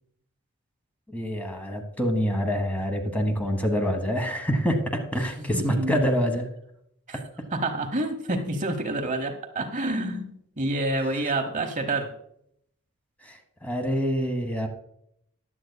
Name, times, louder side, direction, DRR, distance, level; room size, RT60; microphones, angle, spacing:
voice 1, 1.1-6.5 13.3-14.7, equal, 5° left, 4 dB, 1.1 m, -26 dB
voice 2, 5.4-6.0 7.1-7.2 7.5-12.1, right 2 dB, 35° right, 6 dB, 0.9 m, -28 dB
15.0 x 10.5 x 2.2 m, 0.73 s
head